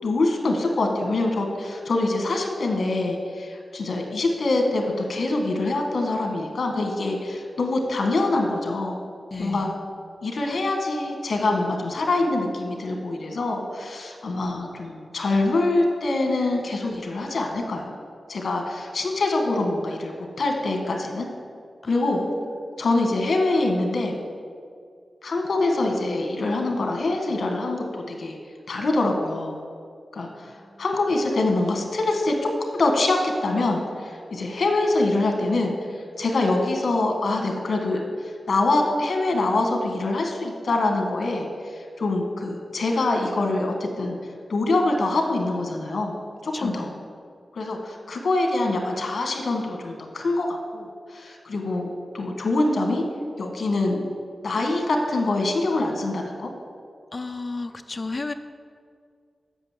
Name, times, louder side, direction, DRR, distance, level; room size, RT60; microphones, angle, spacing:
voice 1, 0.0-9.0 9.4-9.7 10.2-17.9 18.3-21.3 21.9-22.2 22.8-24.1 25.2-28.4 28.7-29.6 30.1-30.5 30.8-32.3 32.8-35.7 36.2-44.2 44.5-46.2 46.4-46.9 47.5-53.0 53.4-54.0 54.4-56.5, left 2 dB, 65° left, 3 dB, 1.4 m, -24 dB
voice 2, 9.3-9.8 21.8-22.5 30.3-30.8 46.5-46.9 57.1-58.3, left 3 dB, 30° left, 8 dB, 0.5 m, -33 dB
8.0 x 6.1 x 7.4 m, 2.2 s
wide cardioid pair, 150°, 0 cm